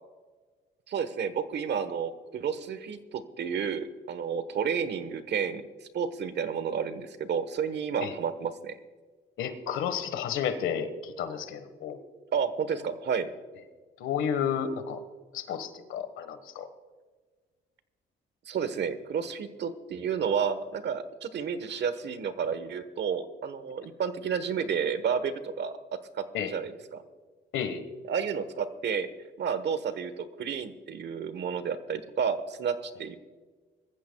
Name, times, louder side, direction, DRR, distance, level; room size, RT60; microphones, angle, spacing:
voice 1, 0.9-8.8 12.3-13.3 18.4-25.8 26.1-27.0 28.1-29.1 29.4-33.2, right 7 dB, 60° right, 12 dB, 1.2 m, -31 dB
voice 2, 9.4-12.0 14.0-15.0 15.3-16.7 26.3-26.5 27.5-27.8, left 8 dB, 85° left, 10 dB, 1.4 m, -31 dB
22.0 x 14.5 x 2.3 m, 1.4 s
cardioid pair, 90°, 20 cm